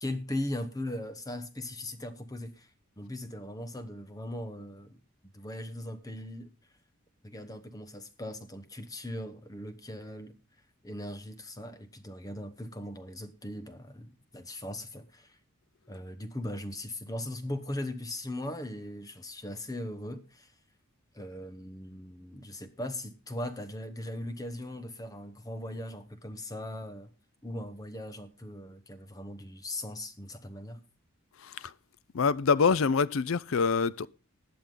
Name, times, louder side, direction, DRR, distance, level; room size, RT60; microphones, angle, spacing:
voice 1, 0.0-2.7 3.0-5.0 5.3-6.5 7.2-10.4 10.8-15.4 15.9-20.5 21.1-27.1 27.4-30.8, left 1 dB, 15° left, 1.0 m, -39 dB
voice 2, 32.1-34.1, left 5 dB, 70° left, 0.5 m, -25 dB
20.0 x 7.0 x 3.8 m
head